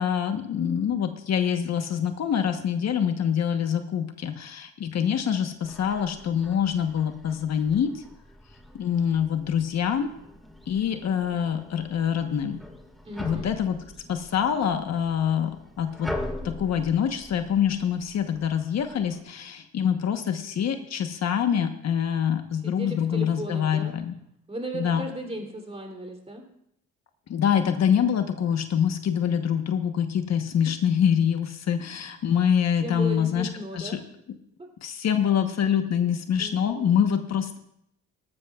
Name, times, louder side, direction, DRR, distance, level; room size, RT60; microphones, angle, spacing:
voice 1, 0.0-8.0 8.7-10.1 10.7-12.6 13.2-13.8 14.1-16.1 16.4-24.1 24.7-25.0 27.3-34.0 34.8-37.6, left 8 dB, 60° left, 7 dB, 1.1 m, -25 dB
sound 1, 5.6-19.2, left 1 dB, ahead, 1.8 m, -42 dB
voice 2, 13.0-13.6 22.6-23.9 24.5-26.4 32.8-34.0 34.6-34.7 36.4-37.0, right 1 dB, 20° right, 1 dB, 3.1 m, -36 dB
18.5 x 13.5 x 2.4 m, 0.74 s
cardioid pair, 90°, 30 cm